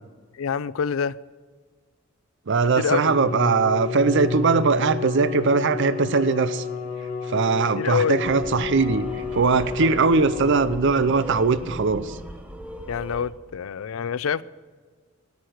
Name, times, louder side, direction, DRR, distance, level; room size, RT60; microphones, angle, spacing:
voice 1, 0.3-1.2 2.8-3.1 7.8-8.2 9.8-9.9 12.9-14.4, left 7 dB, 75° left, 0.4 m, -26 dB
voice 2, 2.5-6.6 7.3-9.1 9.3-12.2, right 4 dB, 60° right, 0.5 m, -21 dB
Bowed string instrument, 2.9-11.2, left 5 dB, 35° left, 1.8 m, -31 dB
sound 1, 8.2-13.3, equal, 5° right, 0.9 m, -38 dB
10.0 x 9.7 x 6.4 m
head